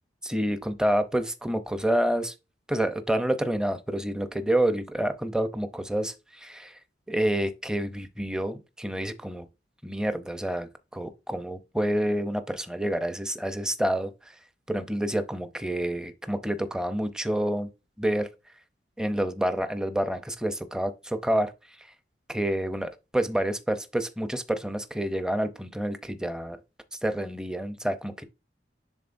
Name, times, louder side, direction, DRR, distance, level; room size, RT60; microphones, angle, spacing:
voice 1, 0.2-2.3 2.7-6.8 7.1-9.5 9.8-14.3 14.7-17.7 18.0-18.3 19.0-21.5 22.3-26.6 26.9-28.2, right 1 dB, 5° right, 0.6 m, -28 dB
10.5 x 3.9 x 2.6 m
head